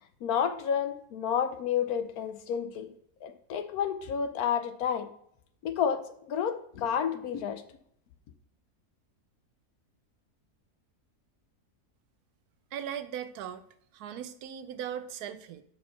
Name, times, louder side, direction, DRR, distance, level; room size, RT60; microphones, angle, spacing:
voice 1, 0.2-2.9 3.2-5.1 5.6-7.6, left 8 dB, 70° left, 9 dB, 1.1 m, -30 dB
voice 2, 12.7-13.6 13.9-15.6, right 9 dB, 75° right, 11 dB, 1.1 m, -38 dB
6.4 x 4.7 x 5.4 m, 0.68 s
omnidirectional pair, 1.7 m